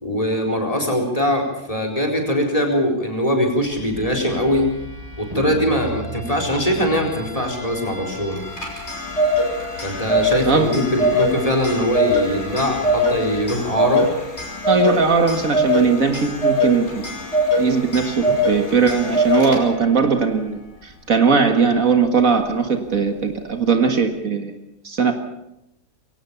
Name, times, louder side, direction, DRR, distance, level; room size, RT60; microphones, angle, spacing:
voice 1, 0.0-4.7 5.2-8.4 9.8-14.1, equal, 20° left, 3 dB, 4.4 m, -21 dB
sound 1, 3.6-13.4, equal, 20° right, 7.4 m, -35 dB
Clock, 8.3-19.9, equal, 45° left, 5.9 m, -22 dB
voice 2, 14.7-17.1 17.6-24.5 24.8-25.1, right 5 dB, 60° right, 6 dB, 2.1 m, -19 dB
23.5 x 17.5 x 7.1 m, 0.86 s
omnidirectional pair, 1.7 m